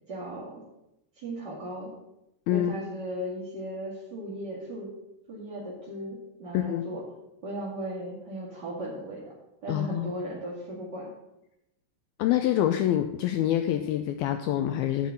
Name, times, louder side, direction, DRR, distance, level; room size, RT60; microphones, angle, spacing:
voice 1, 0.1-0.6 1.2-1.9 2.5-4.9 5.3-7.0 7.4-9.3 9.6-11.1, right 1 dB, 35° right, -8 dB, 2.0 m, -36 dB
voice 2, 2.5-2.8 6.5-6.8 9.7-10.1 12.2-15.1, left 12 dB, 90° left, 8 dB, 2.1 m, -26 dB
10.0 x 5.7 x 7.7 m, 0.88 s
omnidirectional pair, 4.8 m